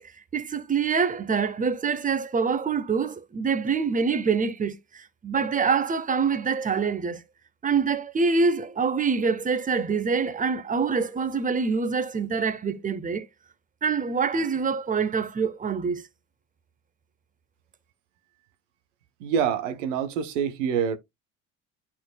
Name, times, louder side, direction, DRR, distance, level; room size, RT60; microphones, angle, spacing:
voice 1, 0.0-7.2 7.6-13.3 13.8-16.0, right 5 dB, 20° right, 1.0 m, -25 dB
voice 2, 19.2-21.0, right 7 dB, 80° right, 1.0 m, -26 dB
11.5 x 4.3 x 2.2 m
hypercardioid pair, 65°, 36 cm